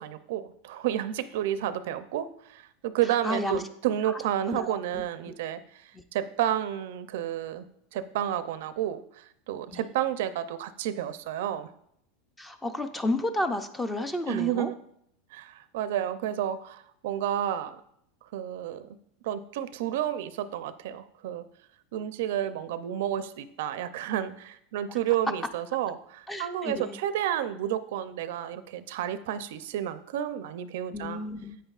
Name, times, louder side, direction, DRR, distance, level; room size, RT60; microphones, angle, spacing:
voice 1, 0.0-7.7 7.9-11.7 14.3-14.8 15.3-17.8 18.3-19.0 19.2-21.5 21.9-31.2, right 11 dB, 70° right, 13 dB, 0.5 m, -31 dB
voice 2, 3.2-3.6 4.1-4.2 4.5-5.3 9.7-9.8 12.4-14.7 26.3-27.0 30.9-31.6, left 1 dB, 10° left, 9 dB, 0.5 m, -32 dB
9.0 x 8.6 x 2.4 m, 0.72 s
supercardioid pair, 170°, 0 cm